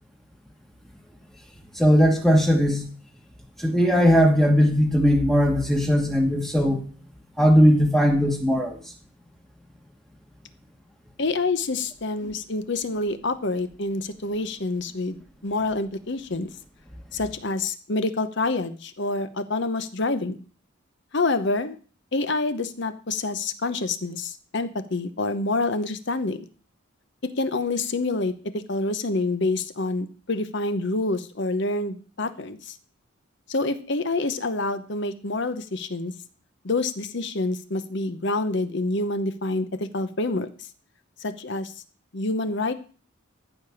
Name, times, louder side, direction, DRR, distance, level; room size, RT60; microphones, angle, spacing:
voice 1, 1.7-2.8 3.6-6.8 7.4-8.8, equal, ahead, 3 dB, 1.3 m, -19 dB
voice 2, 11.2-16.5 17.1-20.4 21.1-21.8 22.1-26.4 27.2-32.8 33.5-36.1 36.6-40.5 41.2-41.7 42.1-42.7, left 2 dB, 55° left, 11 dB, 0.9 m, -27 dB
14.5 x 5.1 x 7.1 m, 0.40 s
head